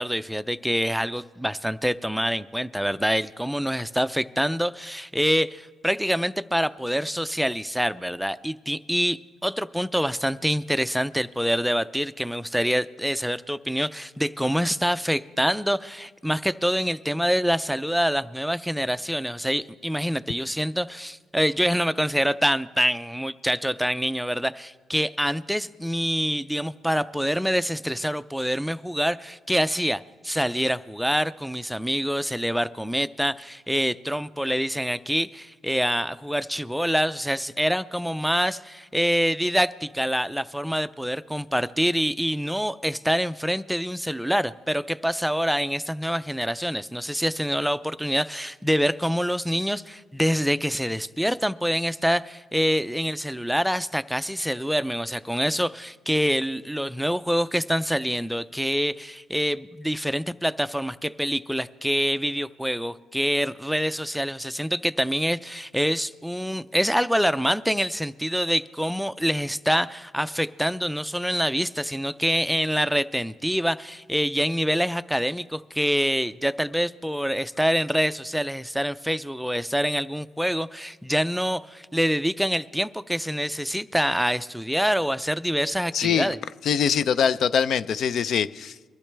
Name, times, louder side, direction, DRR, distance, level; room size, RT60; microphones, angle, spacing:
voice 1, 0.0-86.4, equal, ahead, 0.4 m, -26 dB
voice 2, 85.9-86.3 86.6-88.9, left 7 dB, 65° left, 0.4 m, -23 dB
23.0 x 12.0 x 3.3 m
cardioid pair, 90°, 0 cm